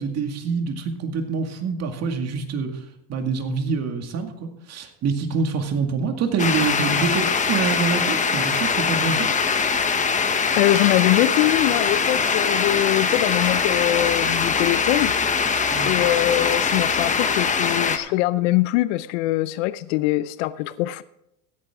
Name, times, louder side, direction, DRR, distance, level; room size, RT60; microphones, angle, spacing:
voice 1, 0.0-2.8 3.1-9.3 15.7-15.9 17.0-17.1, right 5 dB, 40° right, 2.1 m, -26 dB
sound 1, 6.4-18.0, left 5 dB, 20° left, 1.1 m, -22 dB
voice 2, 10.6-15.1 15.8-21.0, left 16 dB, 85° left, 0.6 m, -22 dB
16.0 x 10.5 x 3.7 m
supercardioid pair, 125°, 38 cm